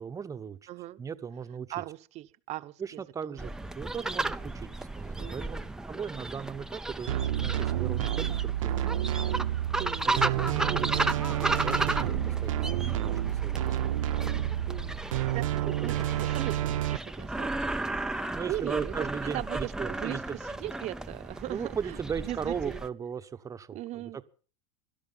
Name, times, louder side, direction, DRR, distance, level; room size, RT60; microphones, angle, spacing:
voice 1, 0.0-0.7 1.0-1.7 2.8-5.4 5.9-8.9 10.0-11.8 12.1-13.9 15.8-16.1 18.3-20.4 21.5-24.2, right 6 dB, 20° right, 1.0 m, -37 dB
voice 2, 0.7-1.0 1.7-3.5 5.2-5.7 9.8-10.2 14.7-17.7 18.0-18.9 19.2-22.8 23.7-24.2, right 15 dB, 45° right, 1.0 m, -39 dB
sound 1, 3.4-22.9, right 2 dB, 5° right, 0.6 m, -34 dB
sound 2, 7.1-17.0, right 12 dB, 85° right, 0.6 m, -29 dB
17.5 x 12.0 x 5.6 m
supercardioid pair, 120°, 16 cm